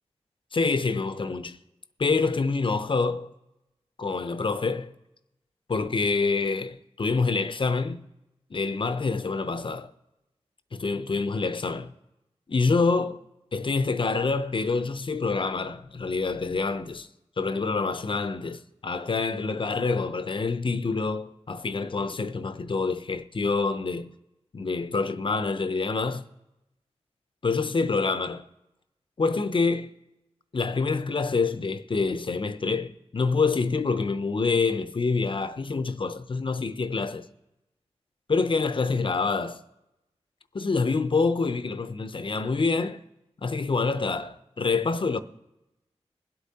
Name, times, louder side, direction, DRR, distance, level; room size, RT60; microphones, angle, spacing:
voice 1, 0.5-1.6 2.0-3.3 4.0-4.9 5.7-8.0 8.5-9.9 10.7-11.9 12.5-13.2 13.5-17.1 17.4-24.1 24.5-26.2 27.4-28.5 29.2-29.9 30.5-37.3 38.3-39.6 40.5-43.0 43.4-45.2, left 4 dB, 50° left, 0.6 m, -26 dB
23.0 x 8.3 x 2.8 m
cardioid pair, 55°, 11 cm